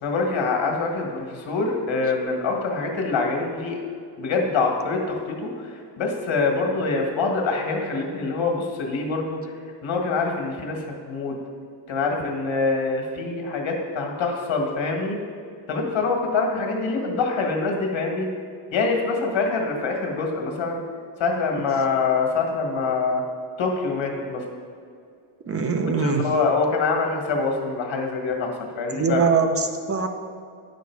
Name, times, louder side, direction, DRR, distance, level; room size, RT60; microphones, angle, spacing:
voice 1, 0.0-3.8 4.2-9.4 9.8-11.4 11.9-15.2 15.7-18.3 18.7-20.8 21.2-23.2 23.6-24.4 25.8-28.5 28.8-29.2, left 4 dB, 65° left, 1 dB, 1.7 m, -25 dB
voice 2, 25.5-26.3 28.9-30.1, right 5 dB, 30° right, 6 dB, 0.6 m, -22 dB
9.5 x 6.4 x 4.7 m, 2.3 s
cardioid pair, 125°, 49 cm